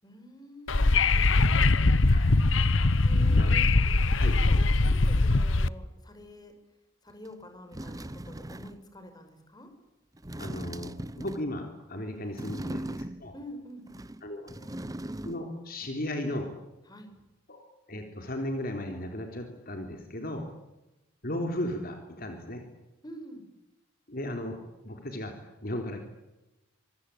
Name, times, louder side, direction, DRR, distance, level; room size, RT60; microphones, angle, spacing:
voice 1, 0.0-2.0 3.0-3.7 4.3-6.5 7.0-9.7 12.5-12.7 13.3-14.1 14.6-15.2 16.9-17.2 23.0-23.4, equal, 20° left, 7 dB, 5.7 m, -47 dB
Wind / Subway metro underground, 0.7-5.7, left 3 dB, 70° left, 1.1 m, -22 dB
sound 1, 7.3-7.4 7.7-8.9 10.2-11.6 12.3-13.4 13.9-15.6 15.8-15.9, right 1 dB, 15° right, 0.9 m, -39 dB
voice 2, 10.4-13.3 14.2-14.5 15.2-16.5 17.5-17.6 17.9-20.5 21.2-22.6 24.1-24.6 24.8-25.3 25.6-26.0, left 1 dB, 45° left, 4 dB, 3.8 m, -35 dB
26.5 x 23.5 x 8.6 m, 0.97 s
head